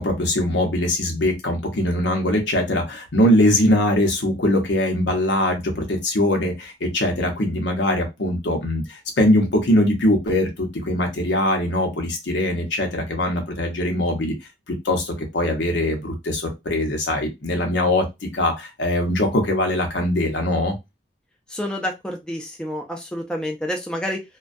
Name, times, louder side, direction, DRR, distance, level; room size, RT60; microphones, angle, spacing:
voice 1, 0.0-14.3 14.7-18.0 18.3-20.7, left 1 dB, 85° left, 3 dB, 0.8 m, -21 dB
voice 2, 21.5-24.2, equal, 5° left, 1 dB, 0.3 m, -28 dB
2.2 x 2.2 x 2.5 m, 0.21 s
head